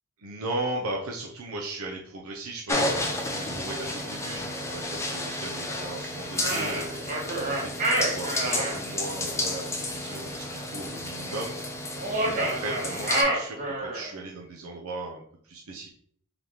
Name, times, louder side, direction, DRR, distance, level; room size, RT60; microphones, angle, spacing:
voice 1, 0.2-15.9, right 2 dB, 75° right, 0 dB, 0.6 m, -37 dB
sound 1, 2.7-13.2, left 1 dB, 15° left, 0.5 m, -32 dB
sound 2, 6.3-8.8 12.0-14.1, right 1 dB, 40° right, 1.1 m, -28 dB
3.9 x 3.0 x 3.4 m, 0.62 s
head